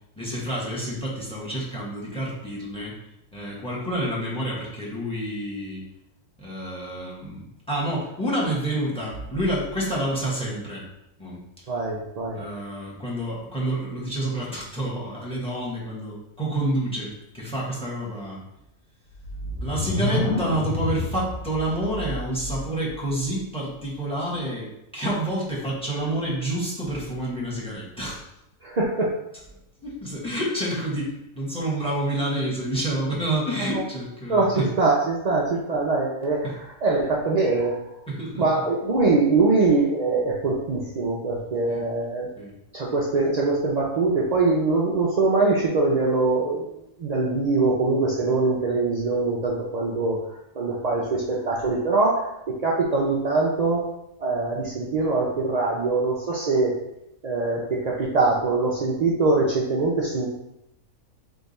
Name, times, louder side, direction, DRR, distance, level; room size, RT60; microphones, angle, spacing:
voice 1, 0.2-2.9 3.3-5.8 6.4-10.9 11.2-11.4 12.3-18.4 19.6-28.2 29.8-34.7 36.4-36.5 38.1-38.4 41.7-41.8 42.4-42.5, right 1 dB, 5° left, -4 dB, 1.1 m, -28 dB
voice 2, 11.7-12.4 28.6-29.1 33.7-33.8 34.3-37.8 38.4-42.3 42.7-46.7 47.0-50.3 50.6-53.8 54.2-56.7 57.2-60.3, right 3 dB, 65° right, -4 dB, 0.4 m, -23 dB
sound 1, 19.1-22.9, left 2 dB, 80° left, 1.3 m, -29 dB
3.6 x 3.5 x 4.1 m, 0.85 s
omnidirectional pair, 1.5 m